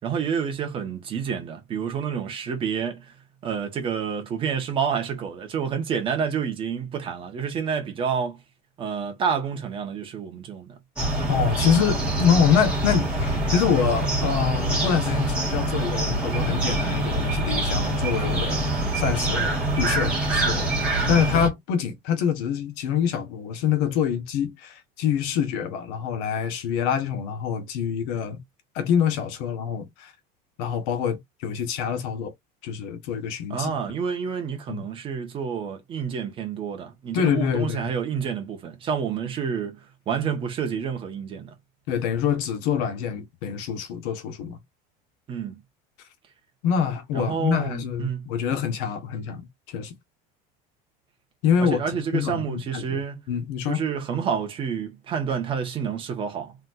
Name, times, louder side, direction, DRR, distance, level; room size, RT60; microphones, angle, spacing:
voice 1, 0.0-3.1 3.4-8.4 8.8-10.8 33.5-39.8 40.1-41.5 45.3-45.6 47.1-48.3 51.6-53.2 53.7-56.7, right 7 dB, 25° right, 1.5 m, -29 dB
sound 1, 11.0-21.5, right 1 dB, 5° right, 2.6 m, -25 dB
voice 2, 11.3-18.7 18.9-20.7 21.1-28.4 28.7-30.1 30.6-32.3 32.6-33.7 34.7-34.8 37.1-37.9 41.9-44.6 46.6-50.0 51.4-53.0 53.3-53.8, left 8 dB, 65° left, 1.6 m, -25 dB
4.3 x 3.7 x 2.7 m
cardioid pair, 180°, 20 cm